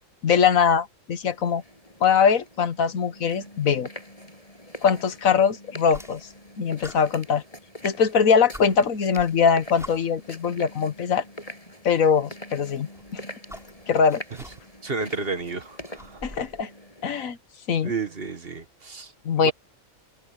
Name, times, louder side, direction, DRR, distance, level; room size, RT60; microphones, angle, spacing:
voice 1, 0.2-1.6 2.0-3.9 4.8-6.3 6.6-7.4 7.8-11.2 11.8-13.2 13.9-14.2 16.2-16.7 17.0-17.4 17.7-17.9 19.2-19.5, left 6 dB, 70° left, 1.6 m, -22 dB
sound 1, 1.2-17.2, left 1 dB, 25° left, 7.7 m, -44 dB
sound 2, 5.9-6.5 6.8-7.9 8.2-8.3 8.5-10.3 11.3-11.4 12.8-14.9 15.2-16.6, equal, ahead, 6.6 m, -45 dB
voice 2, 14.8-16.2 17.8-19.1 19.4-19.5, right 4 dB, 45° right, 1.6 m, -31 dB
omnidirectional pair, 1.5 m